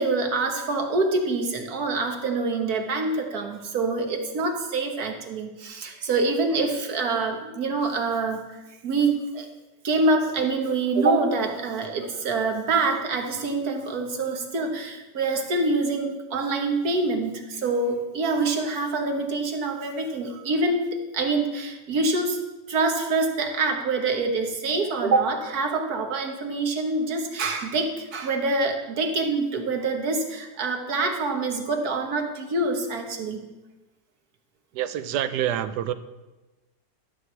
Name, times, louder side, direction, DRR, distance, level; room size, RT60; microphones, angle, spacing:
voice 1, 0.0-8.4 8.8-9.5 9.8-20.9 21.1-22.4 22.7-33.4, right 3 dB, 65° right, 4 dB, 1.6 m, -25 dB
voice 2, 34.7-35.9, right 11 dB, 85° right, 12 dB, 1.2 m, -27 dB
13.0 x 4.7 x 7.2 m, 1.1 s
omnidirectional pair, 1.8 m